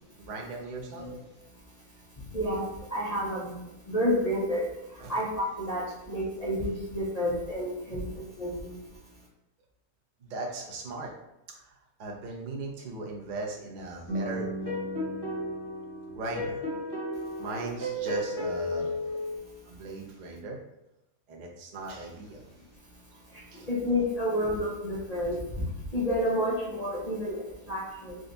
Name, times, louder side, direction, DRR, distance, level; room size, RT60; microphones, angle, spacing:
voice 1, 0.2-1.1 5.0-5.2 10.2-11.1 11.5-14.8 16.1-16.6 17.4-19.0 19.7-20.6 21.3-22.4 23.5-23.7, right 2 dB, 45° right, -1 dB, 0.6 m, -38 dB
voice 2, 2.3-4.7 5.1-8.0 8.4-8.8 23.7-25.4 25.9-28.2, equal, 35° left, -6 dB, 0.7 m, -30 dB
sound 1, 14.1-19.4, left 1 dB, 15° left, 1.2 m, -33 dB
3.7 x 2.3 x 3.9 m, 0.90 s
omnidirectional pair, 1.5 m